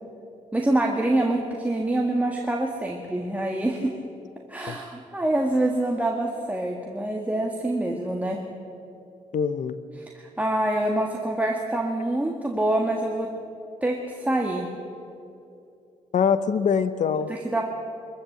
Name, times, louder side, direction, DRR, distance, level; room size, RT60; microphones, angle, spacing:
voice 1, 0.5-4.0 4.5-8.4 10.0-13.3 13.8-14.7 17.3-17.6, right 1 dB, 10° right, 0 dB, 1.7 m, -26 dB
voice 2, 9.3-9.8 16.1-17.3, left 6 dB, 60° left, 12 dB, 0.9 m, -23 dB
23.5 x 14.0 x 7.9 m, 2.7 s
cardioid pair, 115°, 15 cm